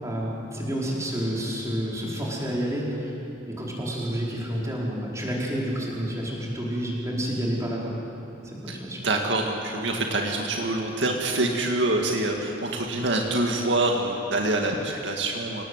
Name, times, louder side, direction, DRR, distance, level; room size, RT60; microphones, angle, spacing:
voice 1, 0.0-3.1 3.5-7.9 8.4-9.0, equal, 15° right, -4 dB, 5.0 m, -29 dB
voice 2, 8.7-15.6, right 2 dB, 65° right, 1 dB, 2.2 m, -26 dB
27.5 x 19.0 x 8.2 m, 2.9 s
head